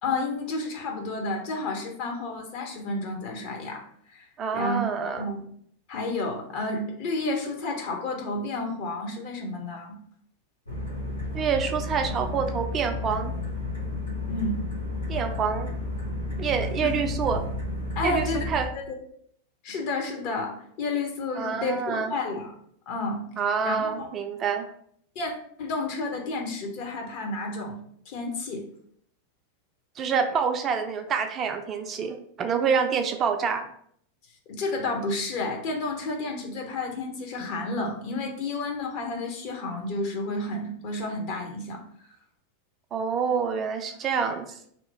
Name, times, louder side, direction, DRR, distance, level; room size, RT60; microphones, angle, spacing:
voice 1, 0.0-3.8 4.1-4.3 4.5-4.8 5.2-5.4 5.9-10.0 14.3-14.6 16.8-17.0 17.9-18.5 18.7-18.9 19.6-22.5 22.9-23.2 23.6-24.1 25.1-25.3 25.6-27.8 28.1-28.7 34.5-41.8, left 3 dB, 45° left, 1 dB, 0.7 m, -31 dB
voice 2, 4.4-5.3 11.3-13.3 15.1-15.7 16.4-17.4 18.0-18.7 21.3-22.1 23.4-24.7 30.0-33.7 42.9-44.6, right 6 dB, 25° right, 5 dB, 0.3 m, -27 dB
sound 1, 10.7-18.6, left 2 dB, 80° left, 0.8 m, -32 dB
2.8 x 2.1 x 4.1 m, 0.66 s
figure-of-eight pair, 90°, 0 cm